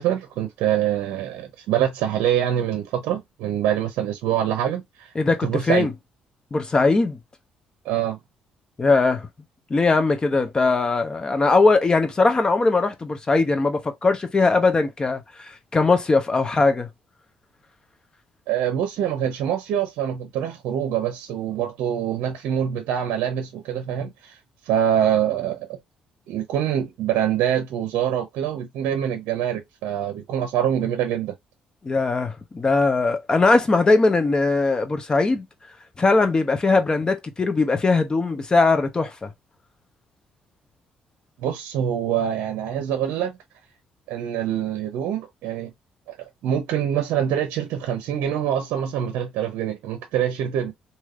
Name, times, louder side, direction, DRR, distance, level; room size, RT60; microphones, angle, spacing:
voice 1, 0.0-5.1 5.4-5.9 7.8-8.2 18.5-24.4 24.6-25.8 26.3-31.3 41.4-43.4 44.1-45.7 46.1-50.7, right 10 dB, 80° right, 0.6 m, -25 dB
voice 2, 5.1-5.9 6.5-7.2 8.8-9.3 9.7-16.9 31.8-35.5 36.0-39.3, left 3 dB, 30° left, 0.8 m, -20 dB
3.2 x 2.7 x 2.3 m
supercardioid pair, 70°, 3 cm